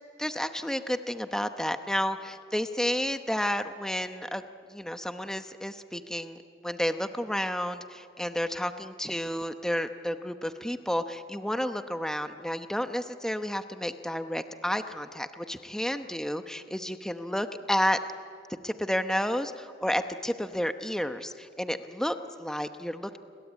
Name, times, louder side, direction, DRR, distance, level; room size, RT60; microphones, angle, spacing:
voice 1, 0.2-4.4 4.7-18.0 18.6-23.2, equal, 5° left, 7 dB, 0.9 m, -31 dB
29.5 x 22.0 x 8.4 m, 2.4 s
head